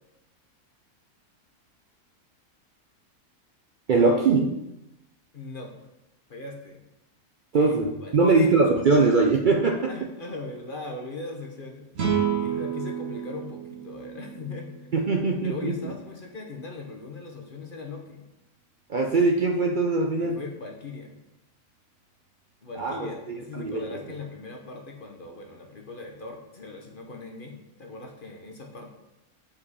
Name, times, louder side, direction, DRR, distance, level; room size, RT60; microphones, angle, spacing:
voice 1, 3.9-4.6 7.5-9.9 14.9-15.7 18.9-20.4 22.8-23.8, right 3 dB, 80° right, 1 dB, 0.4 m, -22 dB
voice 2, 5.3-5.9 6.3-6.8 7.5-7.7 8.0-8.6 9.9-11.9 12.4-14.9 15.4-18.3 20.2-21.2 22.6-28.9, left 3 dB, 40° left, 2 dB, 0.9 m, -39 dB
sound 1, 11.9-15.3, right 8 dB, 60° right, 1.5 m, -30 dB
7.1 x 5.1 x 4.1 m, 0.91 s
omnidirectional pair, 1.6 m